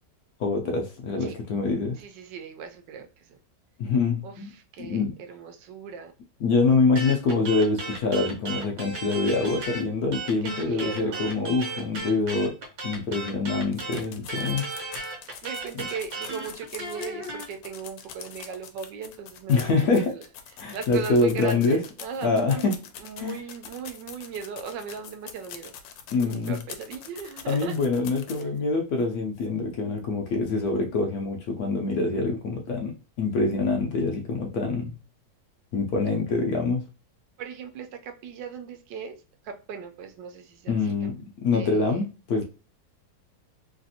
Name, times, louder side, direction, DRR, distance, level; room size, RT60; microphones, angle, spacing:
voice 1, 0.4-2.0 3.8-4.5 4.8-5.1 6.4-12.5 12.8-14.7 15.8-15.9 19.5-20.1 20.6-21.8 22.2-22.8 23.2-23.4 26.1-26.6 27.5-34.9 35.7-36.8 40.7-42.4, left 3 dB, 70° left, 2 dB, 0.9 m, -25 dB
voice 2, 2.0-3.4 4.2-6.1 10.4-11.3 15.4-20.2 20.7-25.7 26.2-27.8 28.4-28.5 37.4-41.1 41.5-42.0, right 6 dB, 85° right, 6 dB, 1.2 m, -38 dB
sound 1, 7.0-9.8 10.1-17.5, right 3 dB, 60° right, 1.3 m, -35 dB
sound 2, 13.7-28.6 29.0-29.1 29.4-29.5, left 8 dB, 90° left, 1.3 m, -44 dB
3.2 x 2.5 x 2.7 m, 0.33 s
omnidirectional pair, 1.9 m